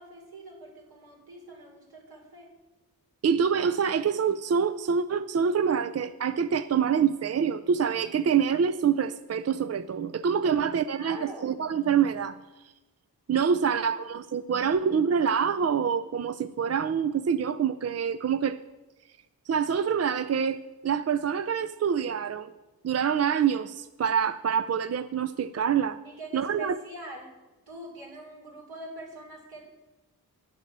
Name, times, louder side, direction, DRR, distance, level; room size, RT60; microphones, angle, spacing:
voice 1, 0.0-2.5 10.4-11.6 13.6-13.8 26.0-27.3 27.7-29.6, right 2 dB, 70° right, -1 dB, 3.5 m, -44 dB
voice 2, 3.2-12.4 13.3-18.6 19.5-22.5 22.8-26.0 26.3-26.7, right 7 dB, 45° right, 10 dB, 0.4 m, -26 dB
9.9 x 8.1 x 7.4 m, 1.1 s
wide cardioid pair, 80°, 38 cm